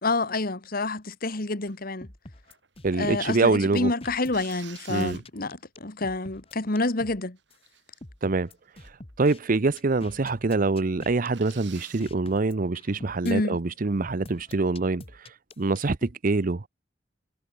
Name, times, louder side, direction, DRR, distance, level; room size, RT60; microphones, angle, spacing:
voice 1, 0.0-2.1 2.9-7.4 13.2-13.6, left 2 dB, 50° left, 1.9 m, -28 dB
sound 1, 1.7-1.9 2.4-3.3 4.3-5.6 6.2-6.3 6.7-7.1 7.4-8.3 8.8-9.1 9.4-9.5 10.1-10.2 10.5-10.6 11.3-12.1 14.4-14.8, right 10 dB, 70° right, 8.0 m, -49 dB
sound 2, 2.0-3.4 3.8-7.2 7.5-7.6 8.0-9.4 9.8-13.3 14.0-16.1, left 1 dB, 30° left, 1.8 m, -46 dB
voice 2, 2.8-3.9 4.9-5.2 8.2-8.5 9.2-15.0 15.6-16.7, right 3 dB, 45° right, 0.7 m, -25 dB
head